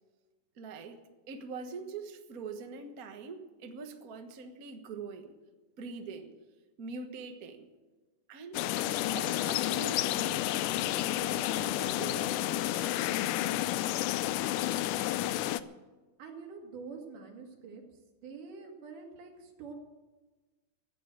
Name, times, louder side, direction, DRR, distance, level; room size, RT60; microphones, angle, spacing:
voice 1, 0.5-1.0 1.3-5.3 5.8-6.3 6.8-7.7 8.3-8.6 9.1-12.8, right 4 dB, 50° right, 5 dB, 1.1 m, -43 dB
sound 1, 8.5-15.6, left 14 dB, 85° left, 2.1 m, -30 dB
voice 2, 16.2-17.8 18.2-19.7, right 5 dB, 85° right, 2 dB, 3.7 m, -46 dB
15.5 x 9.0 x 8.8 m, 1.2 s
omnidirectional pair, 3.6 m